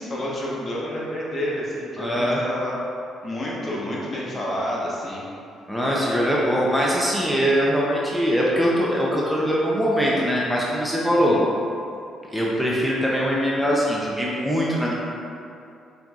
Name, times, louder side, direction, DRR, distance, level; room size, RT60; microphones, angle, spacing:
voice 1, 0.0-2.7 3.2-5.2 11.2-11.5, left 1 dB, 45° left, -5 dB, 1.1 m, -29 dB
voice 2, 2.0-2.4 5.7-11.4 12.3-14.9, equal, ahead, -5 dB, 0.7 m, -22 dB
5.8 x 2.7 x 2.4 m, 2.6 s
supercardioid pair, 60°, 0 cm